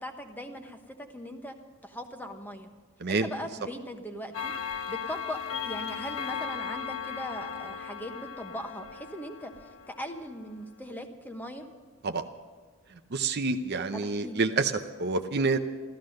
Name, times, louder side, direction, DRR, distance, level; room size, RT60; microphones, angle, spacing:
voice 1, 0.0-1.5 1.8-2.7 3.1-4.5 4.9-5.4 5.6-9.5 9.9-11.7 13.9-14.4, equal, 10° left, 5 dB, 1.0 m, -39 dB
Clock, 4.3-10.3, left 7 dB, 70° left, 1.1 m, -37 dB
voice 2, 13.1-15.6, right 3 dB, 50° right, 8 dB, 0.7 m, -28 dB
14.5 x 13.5 x 6.4 m, 1.5 s
head